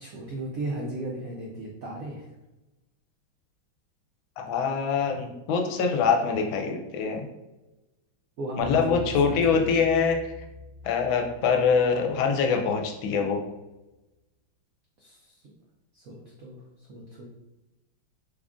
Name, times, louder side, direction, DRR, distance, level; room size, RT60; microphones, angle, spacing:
voice 1, 0.0-2.3 8.4-9.7 15.0-15.4 15.9-17.3, right 1 dB, 75° right, -3 dB, 0.7 m, -35 dB
voice 2, 4.4-7.2 8.6-10.3 10.8-13.4, left 5 dB, 80° left, 3 dB, 1.3 m, -24 dB
sound 1, 8.6-13.0, left 1 dB, 25° left, 0.8 m, -43 dB
3.7 x 2.4 x 3.6 m, 1.0 s
omnidirectional pair, 2.2 m